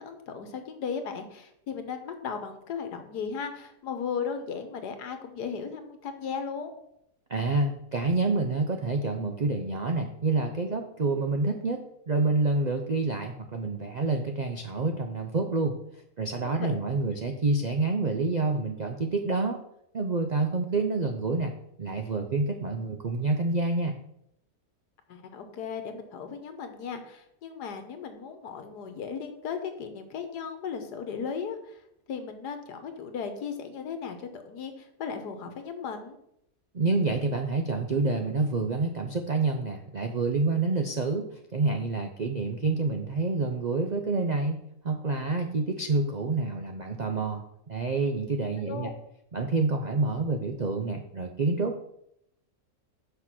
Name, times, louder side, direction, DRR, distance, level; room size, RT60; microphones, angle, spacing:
voice 1, 0.0-6.7 16.4-16.8 25.1-31.8 32.1-36.2 48.6-48.9, left 6 dB, 85° left, 7 dB, 1.6 m, -36 dB
voice 2, 7.3-15.8 16.2-19.6 19.9-24.0 36.7-48.9 49.3-51.8, right 3 dB, 65° right, 4 dB, 0.4 m, -28 dB
6.2 x 5.8 x 6.1 m, 0.75 s
omnidirectional pair, 1.7 m